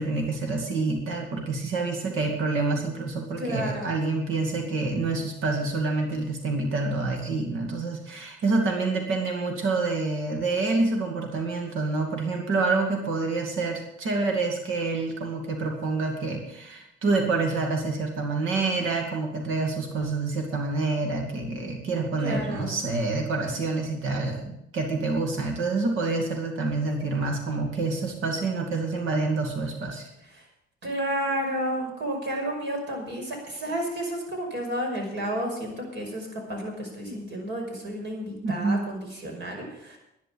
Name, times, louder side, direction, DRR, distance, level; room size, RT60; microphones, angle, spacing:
voice 1, 0.0-30.1 37.1-37.2 38.4-38.9, right 3 dB, 85° right, 3 dB, 2.4 m, -27 dB
voice 2, 3.4-3.9 22.2-22.8 30.4-30.5 30.8-40.0, right 1 dB, 65° right, 2 dB, 5.7 m, -31 dB
11.0 x 9.8 x 8.6 m, 0.84 s
cardioid pair, 90°, 20 cm